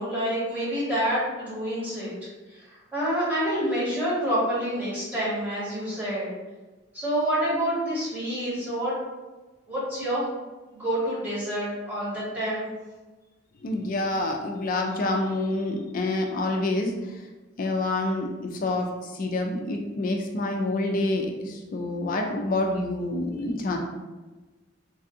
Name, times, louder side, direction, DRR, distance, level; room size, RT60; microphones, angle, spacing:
voice 1, 0.0-2.1 2.5-6.3 6.9-9.0 9.7-10.3 10.7-12.7, equal, 10° right, -11 dB, 1.5 m, -27 dB
voice 2, 13.6-16.9 17.6-23.8, left 2 dB, 40° left, 2 dB, 0.3 m, -27 dB
3.3 x 2.6 x 2.5 m, 1.2 s
head